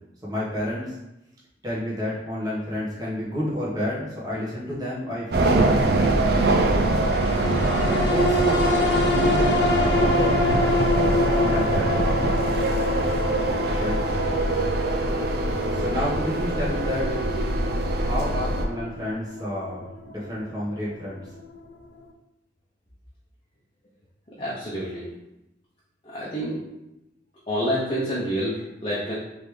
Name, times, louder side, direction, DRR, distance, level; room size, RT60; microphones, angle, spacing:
voice 1, 0.2-1.0 1.6-6.9 7.8-8.6 9.0-9.5 10.2-10.6 11.2-12.1 13.7-14.0 15.7-17.2 17.9-19.8 20.0-21.3, left 1 dB, 20° right, -7 dB, 1.2 m, -30 dB
sound 1, 5.3-18.6, right 2 dB, 55° right, 0.5 m, -23 dB
sound 2, 6.9-21.6 22.0-22.1, left 2 dB, 70° left, 0.4 m, -27 dB
voice 2, 24.4-25.1 26.0-26.6 27.5-29.1, equal, 30° left, -7 dB, 0.7 m, -28 dB
3.9 x 3.4 x 3.2 m, 0.93 s
head